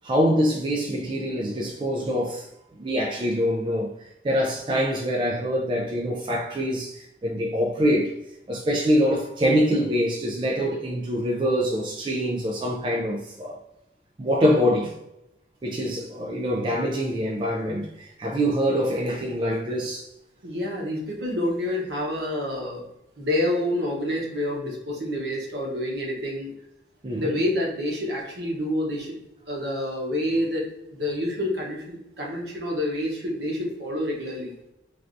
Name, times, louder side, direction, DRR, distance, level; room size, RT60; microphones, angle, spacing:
voice 1, 0.0-2.5 2.8-3.9 4.2-8.1 8.5-13.6 14.2-15.0 15.6-20.1 27.0-27.4, equal, 25° right, 0.3 m, -24 dB
voice 2, 20.4-22.8 23.2-26.5 27.1-29.2 29.5-30.6 30.9-34.5, left 1 dB, 75° right, 0.9 m, -28 dB
3.2 x 2.5 x 2.5 m
head